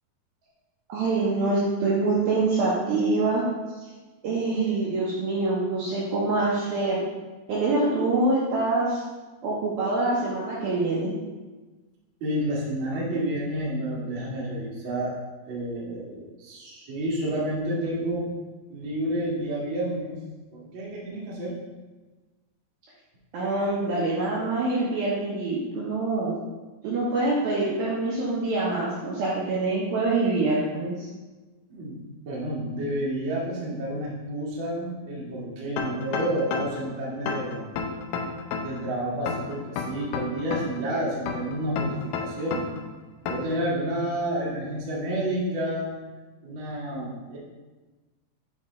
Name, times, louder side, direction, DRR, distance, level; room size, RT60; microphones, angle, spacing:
voice 1, 0.9-3.4 3.7-3.9 4.2-7.0 7.5-9.0 9.4-11.1 23.3-26.4 26.8-31.1, right 2 dB, 70° right, -5 dB, 2.3 m, -25 dB
voice 2, 12.2-15.1 15.5-18.3 18.7-20.2 20.5-21.6 31.7-32.0 32.2-37.7 38.6-42.6 43.2-46.0 46.4-47.4, right 1 dB, 50° right, -7 dB, 1.4 m, -30 dB
sound 1, 35.8-36.8 37.3-38.8 39.3-40.8 41.3-42.8 43.3-43.6, left 5 dB, 85° left, 2.2 m, -31 dB
8.7 x 3.6 x 4.2 m, 1.2 s
omnidirectional pair, 5.3 m